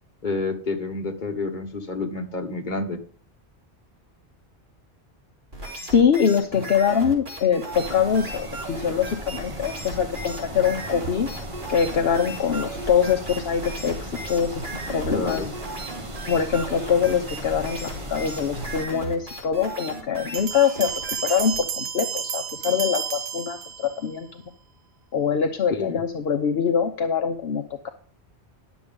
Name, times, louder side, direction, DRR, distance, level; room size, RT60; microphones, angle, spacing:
voice 1, 0.2-3.0 15.1-15.5 25.7-26.0, left 3 dB, 45° left, 3 dB, 1.6 m, -29 dB
sound 1, 5.5-21.6, right 2 dB, 50° right, 3.3 m, -36 dB
voice 2, 5.9-11.3 11.7-14.6 14.9-15.4 16.3-20.9 21.2-24.4 25.1-27.9, left 7 dB, 65° left, 6 dB, 1.0 m, -23 dB
sound 2, 7.7-18.9, right 1 dB, 30° right, 1.2 m, -37 dB
Bell, 20.3-24.1, right 8 dB, 70° right, 1.0 m, -31 dB
11.5 x 7.2 x 5.2 m, 0.43 s
omnidirectional pair, 1.1 m